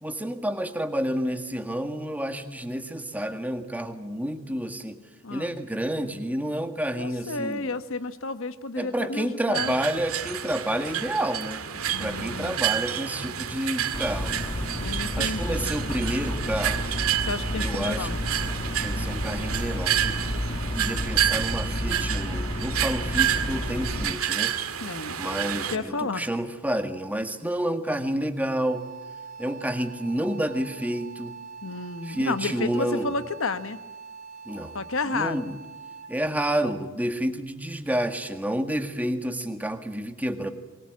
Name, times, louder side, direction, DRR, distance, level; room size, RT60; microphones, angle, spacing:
voice 1, 0.0-5.0 5.3-7.7 8.8-11.6 12.0-14.4 15.1-16.9 17.6-18.2 18.8-20.2 20.8-24.5 25.2-28.8 29.4-31.3 32.0-33.1 34.5-34.8 35.1-35.6 36.1-40.5, right 1 dB, 5° right, 6 dB, 1.7 m, -29 dB
voice 2, 5.2-5.6 7.0-9.7 11.9-12.6 14.8-15.7 17.2-18.1 24.8-25.2 25.7-26.2 31.6-33.8 34.7-35.4, left 3 dB, 65° left, 11 dB, 1.2 m, -31 dB
sound 1, 9.5-25.8, right 10 dB, 85° right, 2.1 m, -29 dB
sound 2, 13.9-24.1, left 1 dB, 25° left, 1.2 m, -31 dB
Wind instrument woodwind instrument, 28.6-36.3, right 5 dB, 35° right, 2.6 m, -43 dB
26.5 x 21.5 x 8.6 m, 1.2 s
head